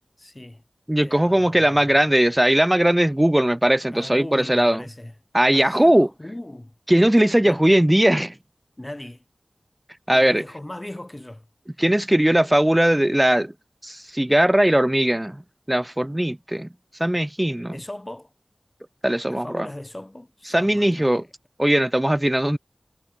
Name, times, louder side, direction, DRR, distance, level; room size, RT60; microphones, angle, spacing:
voice 1, 0.2-0.6 1.0-2.1 3.9-5.1 5.5-6.7 7.4-7.6 8.8-9.2 10.1-11.5 17.7-18.3 19.2-21.3, left 1 dB, 25° left, 5.9 m, -38 dB
voice 2, 0.9-4.8 5.3-6.1 6.9-8.3 10.1-10.4 11.8-13.5 13.8-15.4 15.7-16.7 17.0-17.8 19.0-19.7 20.5-21.2 21.6-22.6, right 1 dB, 15° right, 0.9 m, -19 dB
wide cardioid pair, 40°, 0 cm